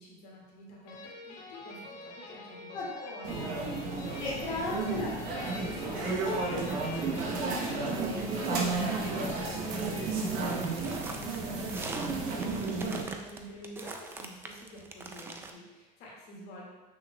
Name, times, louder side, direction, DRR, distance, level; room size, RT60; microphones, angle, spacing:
voice 1, 0.0-3.5 11.1-16.6, equal, 65° left, -4 dB, 1.9 m, -48 dB
sound 1, 0.9-11.6, left 2 dB, 90° left, 1.2 m, -48 dB
voice 2, 2.7-3.5 4.2-5.5 5.8-6.8 7.0-9.7 10.1-10.7, left 2 dB, 25° left, -7 dB, 1.7 m, -39 dB
sound 2, 3.2-13.0, right 3 dB, 55° right, 1.0 m, -33 dB
sound 3, 10.4-15.5, right 3 dB, 15° right, 0.3 m, -42 dB
7.1 x 6.1 x 2.3 m, 1.1 s
cardioid pair, 170°, 18 cm